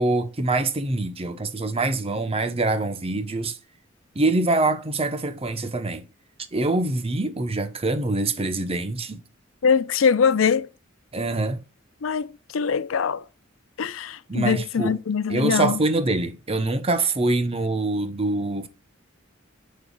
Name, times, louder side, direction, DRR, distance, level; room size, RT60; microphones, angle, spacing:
voice 1, 0.0-3.6 4.1-6.1 6.5-9.2 11.1-11.6 14.3-15.0 15.3-18.7, right 2 dB, 30° right, 0.9 m, -24 dB
voice 2, 9.6-10.7 12.0-13.2 13.8-15.8, left 6 dB, 80° left, 0.5 m, -22 dB
8.2 x 5.3 x 2.3 m
head